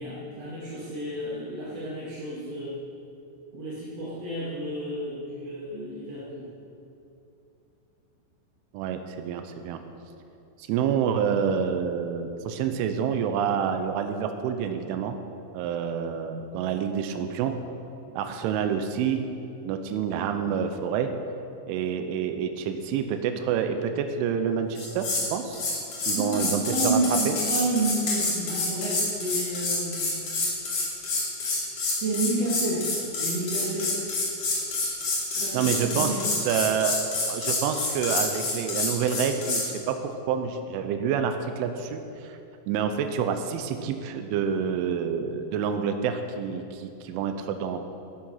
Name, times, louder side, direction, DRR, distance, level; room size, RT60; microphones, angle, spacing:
voice 1, 0.0-2.8 3.5-6.5 26.1-30.2 31.8-34.0 35.4-36.2, right 2 dB, 40° right, -9 dB, 2.7 m, -30 dB
voice 2, 8.7-9.8 10.7-15.2 15.6-17.6 18.2-19.2 19.7-21.1 21.7-25.6 26.1-27.0 27.3-27.4 35.5-36.1 36.5-42.4 42.7-47.8, right 7 dB, 85° right, 7 dB, 3.3 m, -28 dB
sound 1, 24.8-25.3 25.5-39.7, left 3 dB, 45° left, 4.2 m, -28 dB
13.5 x 13.0 x 5.8 m, 2.7 s
omnidirectional pair, 5.4 m